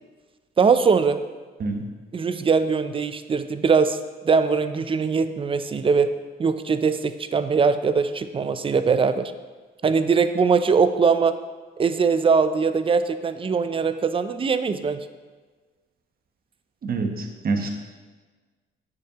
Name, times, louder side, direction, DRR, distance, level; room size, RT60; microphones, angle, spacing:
voice 1, 0.6-1.2 2.1-4.0 4.2-6.1 6.4-9.3 9.8-11.4 11.8-15.0, right 5 dB, 25° right, 11 dB, 0.4 m, -21 dB
voice 2, 16.8-17.7, right 3 dB, 50° right, 4 dB, 1.1 m, -26 dB
8.3 x 6.7 x 2.9 m, 1.4 s
cardioid pair, 90°, 20 cm